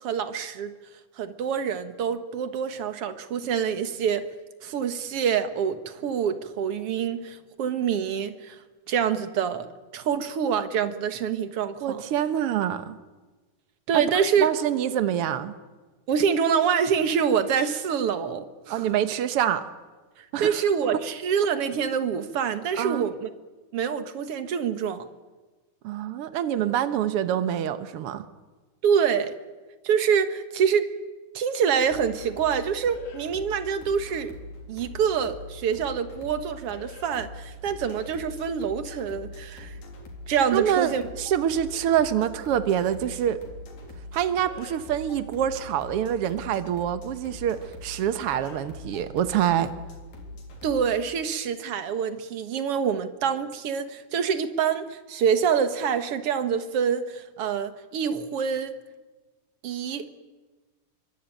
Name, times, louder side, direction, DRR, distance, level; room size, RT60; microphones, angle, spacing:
voice 1, 0.0-0.7 1.2-4.3 4.6-8.6 8.9-9.7 9.9-12.0 13.9-14.5 16.1-18.9 20.2-23.3 23.7-25.1 28.8-29.3 29.8-30.9 31.3-34.3 34.7-39.8 40.3-41.0 50.6-58.7 59.6-60.1, right 7 dB, 55° right, 10 dB, 1.9 m, -26 dB
voice 2, 11.8-13.0 13.9-15.5 18.7-19.7 20.3-20.6 22.8-23.1 25.8-28.2 40.5-43.4 44.1-49.7, right 10 dB, 80° right, 11 dB, 1.2 m, -26 dB
sound 1, 31.8-51.0, left 1 dB, 75° left, 5.4 m, -42 dB
26.0 x 24.0 x 9.1 m, 1.3 s
omnidirectional pair, 4.1 m